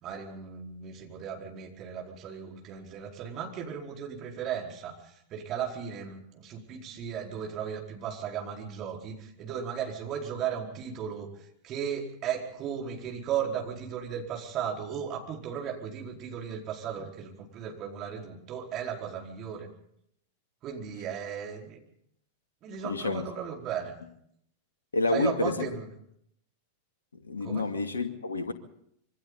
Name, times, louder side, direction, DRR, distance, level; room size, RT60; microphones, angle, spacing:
voice 1, 0.0-5.0 5.3-11.3 11.6-19.7 20.6-21.8 22.6-23.9 25.1-25.9 27.4-27.7, right 8 dB, 35° right, 4.6 m, -36 dB
voice 2, 22.8-23.2 24.9-25.7 27.1-28.5, left 3 dB, 75° left, 2.4 m, -29 dB
26.5 x 24.0 x 4.1 m
figure-of-eight pair, 90°, 0 cm